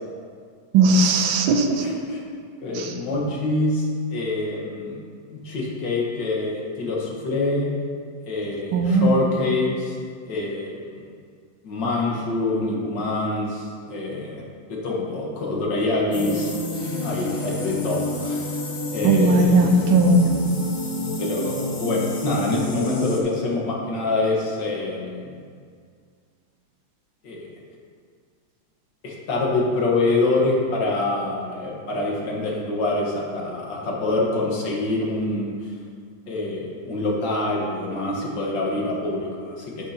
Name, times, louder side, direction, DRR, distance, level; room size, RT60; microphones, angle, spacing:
voice 1, 0.7-1.8 2.7-2.9 8.7-9.2 19.0-20.3, right 2 dB, 90° right, 4 dB, 1.5 m, -18 dB
voice 2, 1.7-2.2 2.6-5.0 5.3-7.7 8.3-9.9 10.3-11.0 11.6-14.4 14.7-16.5 17.0-18.5 18.9-19.6 21.2-25.3 27.2-27.5 29.0-35.7 36.3-39.9, left 2 dB, 65° left, -3 dB, 2.0 m, -25 dB
sound 1, 16.1-23.2, left 2 dB, 40° left, 0.8 m, -29 dB
11.5 x 6.5 x 2.8 m, 2.1 s
omnidirectional pair, 2.2 m